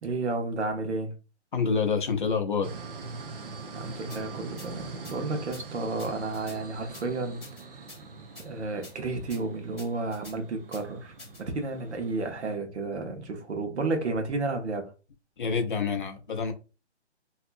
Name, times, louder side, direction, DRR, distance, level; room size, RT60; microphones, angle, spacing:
voice 1, 0.0-1.1 3.7-7.4 8.4-11.1 11.4-14.9, right 3 dB, 70° right, 1.0 m, -32 dB
voice 2, 1.5-2.7 15.4-16.5, left 5 dB, 45° left, 0.6 m, -27 dB
sound 1, 2.6-12.6, right 4 dB, 50° right, 0.5 m, -43 dB
sound 2, 4.1-4.2 4.6-4.7 5.0-5.1 5.5-5.6 6.0-6.6 6.9-7.0 7.4-8.0 8.3-8.5 8.8-8.9 9.3-9.4 9.8-10.3 10.7-10.8 11.2-11.4, left 2 dB, ahead, 0.7 m, -47 dB
2.7 x 2.4 x 2.5 m
hypercardioid pair, 170°, 35 cm